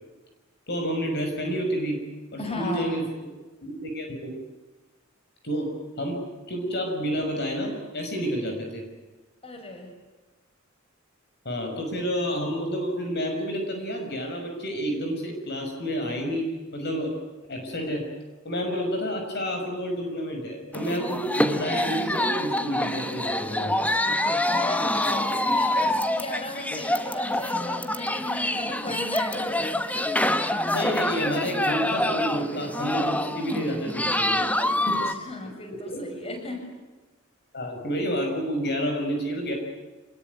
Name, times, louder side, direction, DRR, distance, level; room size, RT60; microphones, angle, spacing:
voice 1, 0.7-2.0 2.3-3.0 3.6-4.3 5.4-5.7 6.0-8.8 11.4-17.1 17.5-18.0 18.4-23.7 30.7-34.4 34.9-35.1 35.7-36.0 37.5-39.5, equal, 55° left, 3 dB, 6.0 m, -29 dB
voice 2, 2.4-2.9 9.4-9.9 24.5-29.6 34.8-36.6, left 2 dB, 30° left, 4 dB, 6.7 m, -36 dB
sound 1, 20.7-35.1, left 1 dB, 5° left, 1.3 m, -26 dB
27.0 x 21.5 x 9.5 m, 1.2 s
head